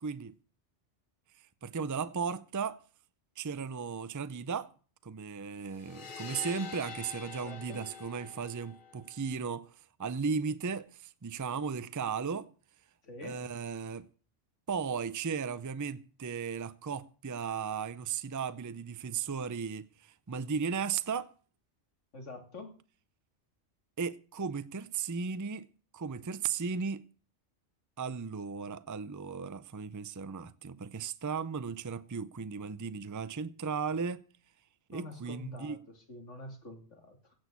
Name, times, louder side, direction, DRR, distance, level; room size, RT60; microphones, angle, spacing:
voice 1, 0.0-0.3 1.6-2.8 3.4-4.7 5.0-9.7 10.0-12.5 13.2-14.1 14.7-21.3 24.0-25.7 25.9-27.0 28.0-34.2 34.9-35.8, right 6 dB, 25° right, 0.4 m, -36 dB
sound 1, 5.7-9.4, left 6 dB, 45° left, 1.0 m, -46 dB
voice 2, 7.4-7.8 13.0-13.4 22.1-22.7 34.9-37.3, left 2 dB, 75° left, 3.0 m, -46 dB
16.5 x 6.3 x 8.2 m
omnidirectional pair, 1.3 m